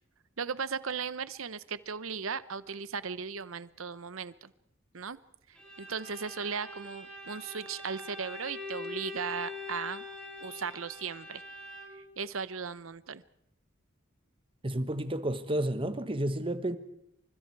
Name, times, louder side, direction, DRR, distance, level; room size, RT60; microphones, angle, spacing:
voice 1, 0.4-4.5 4.9-5.2 5.5-10.0 10.4-11.4 11.9-13.2, right 6 dB, 75° right, 0.9 m, -37 dB
Bowed string instrument, 5.6-12.1, left 2 dB, 5° left, 6.8 m, -43 dB
voice 2, 14.6-16.8, right 1 dB, 25° right, 1.4 m, -31 dB
29.0 x 25.0 x 4.8 m
head